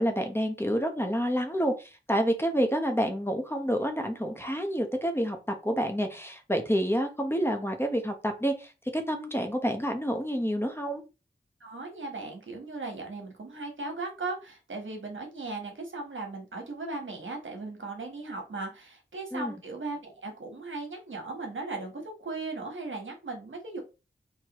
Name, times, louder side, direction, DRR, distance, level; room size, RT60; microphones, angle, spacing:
voice 1, 0.0-11.0 19.3-19.6, equal, 10° left, 5 dB, 0.9 m, -28 dB
voice 2, 11.6-23.8, right 3 dB, 80° right, 2 dB, 1.3 m, -37 dB
4.7 x 2.9 x 3.0 m, 0.29 s
wide cardioid pair, 65°, 20 cm